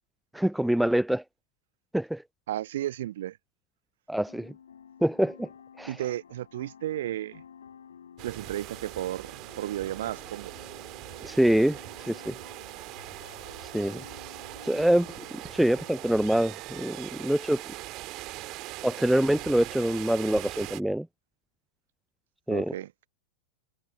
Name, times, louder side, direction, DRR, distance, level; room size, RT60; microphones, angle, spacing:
voice 1, 0.3-1.2 1.9-2.2 4.1-4.5 5.0-5.5 5.8-5.9 11.2-11.8 12.1-12.3 13.7-14.0 14.7-15.1 15.3-17.6 18.8-21.1 22.5-22.7, right 1 dB, ahead, 0.4 m, -25 dB
voice 2, 2.5-3.4 5.9-7.4 8.2-10.5 22.5-23.1, right 13 dB, 60° right, 1.1 m, -33 dB
sound 1, 4.3-16.0, left 8 dB, 70° left, 6.8 m, -52 dB
sound 2, 8.2-20.8, right 20 dB, 40° right, 1.9 m, -41 dB
figure-of-eight pair, 90°, 0 cm